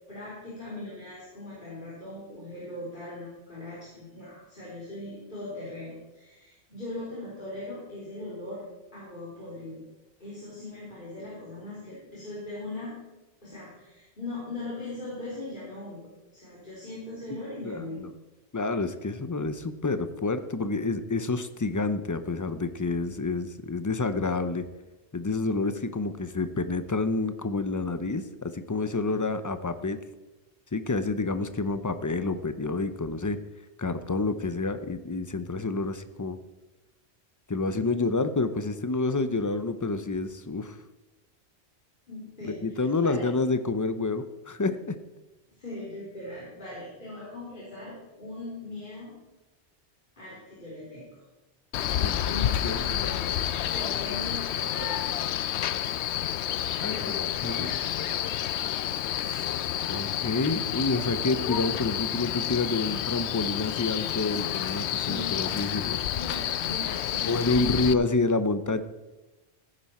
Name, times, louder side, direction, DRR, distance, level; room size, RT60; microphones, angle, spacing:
voice 1, 0.1-8.6 8.9-9.8 10.2-13.0 13.4-16.0 16.3-18.0 42.1-43.3 45.6-49.1 50.2-51.2 52.2-55.1 56.9-58.4 65.0-65.6 66.2-67.4 67.6-67.9, left 2 dB, 45° left, -8 dB, 3.7 m, -40 dB
voice 2, 18.5-24.6 25.1-30.0 30.7-33.4 33.8-36.4 37.5-40.8 42.4-45.0 52.0-53.2 56.8-57.7 59.9-66.0 67.3-68.8, left 3 dB, 25° left, 11 dB, 0.4 m, -28 dB
Male speech man speaking, 51.7-67.9, left 11 dB, 75° left, 0.8 m, -29 dB
16.0 x 9.4 x 4.3 m, 1.1 s
omnidirectional pair, 1.2 m